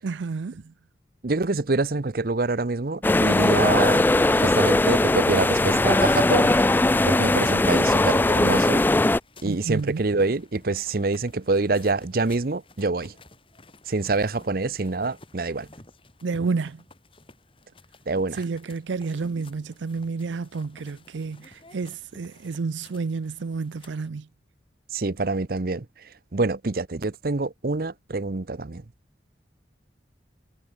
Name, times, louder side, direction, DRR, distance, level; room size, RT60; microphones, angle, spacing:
voice 1, 0.0-0.7 9.4-10.0 16.2-16.8 18.3-24.3, right 4 dB, 85° right, 0.5 m, -30 dB
voice 2, 1.2-6.6 7.1-8.8 9.4-13.1 13.9-15.7 18.1-18.4 24.9-25.9 26.3-28.8, right 3 dB, 55° right, 0.8 m, -26 dB
sound 1, 3.0-9.2, left 2 dB, 10° left, 0.3 m, -20 dB
sound 2, 6.0-24.1, left 2 dB, 30° left, 7.5 m, -53 dB
head